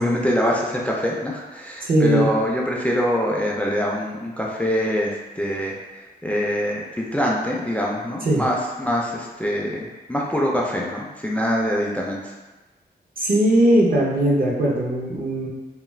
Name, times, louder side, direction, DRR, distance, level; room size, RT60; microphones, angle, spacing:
voice 1, 0.0-5.7 6.2-12.3, equal, 10° left, -3 dB, 0.3 m, -24 dB
voice 2, 1.8-2.3 8.2-8.4 13.2-15.5, right 1 dB, 60° right, -4 dB, 0.7 m, -19 dB
2.3 x 2.2 x 3.1 m, 1.1 s
wide cardioid pair, 95°, 17 cm